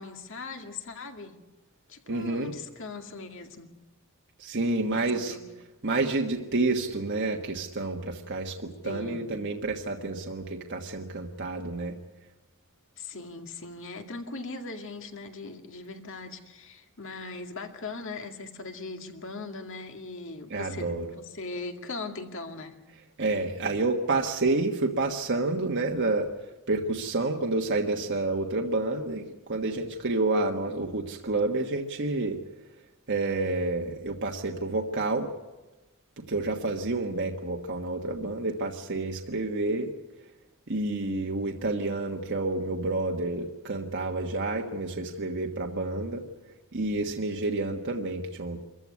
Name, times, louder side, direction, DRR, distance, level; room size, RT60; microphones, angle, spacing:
voice 1, 0.0-1.4 1.9-3.7 4.9-5.5 8.8-9.4 13.0-22.8, left 3 dB, 60° left, 5 dB, 2.3 m, -39 dB
voice 2, 2.1-2.5 4.4-5.4 5.8-12.0 20.5-21.1 23.2-26.3 26.7-32.4 33.1-35.3 36.2-39.9 40.7-46.2 46.7-48.6, right 2 dB, 55° right, 1 dB, 1.4 m, -29 dB
24.5 x 14.5 x 9.6 m, 1.1 s
head